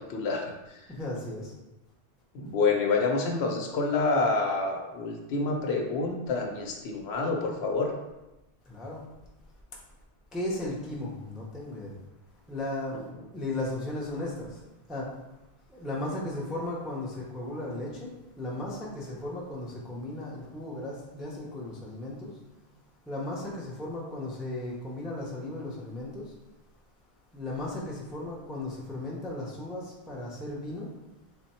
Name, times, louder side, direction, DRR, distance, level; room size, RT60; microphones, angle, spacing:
voice 1, 0.1-0.9 2.3-7.9 12.9-13.2, left 3 dB, 75° left, 2 dB, 0.9 m, -28 dB
voice 2, 0.9-1.5 8.7-9.0 10.3-11.9 12.5-13.0 13.3-14.6 14.9-15.1 15.7-22.3 23.1-26.3 27.3-30.9, left 1 dB, ahead, -4 dB, 0.4 m, -36 dB
3.4 x 2.1 x 4.1 m, 1.0 s
omnidirectional pair, 1.1 m